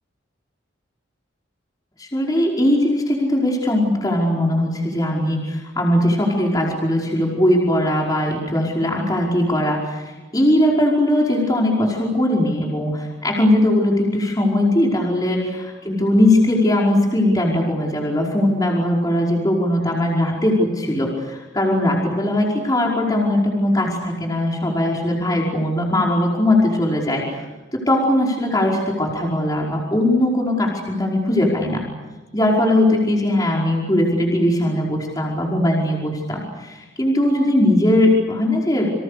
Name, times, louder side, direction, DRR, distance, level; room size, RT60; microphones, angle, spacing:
voice 1, 2.0-27.4 27.7-31.8 32.3-38.9, left 1 dB, 20° left, -1 dB, 5.1 m, -19 dB
29.5 x 26.5 x 6.7 m, 1.2 s
head